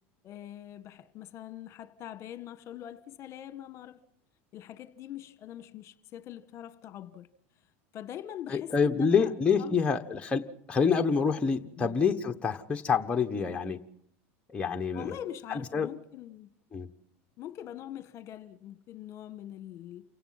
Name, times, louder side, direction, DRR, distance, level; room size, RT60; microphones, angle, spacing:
voice 1, 0.2-4.0 4.5-7.3 7.9-9.3 9.6-9.9 11.8-12.0 14.9-16.5 17.4-20.0, left 11 dB, 45° left, 1.5 m, -43 dB
voice 2, 8.5-10.4 10.7-13.8 14.5-15.1 15.5-15.9 16.7-16.9, left 6 dB, 15° left, 1.2 m, -27 dB
28.5 x 17.0 x 5.9 m
supercardioid pair, 110°, 7 cm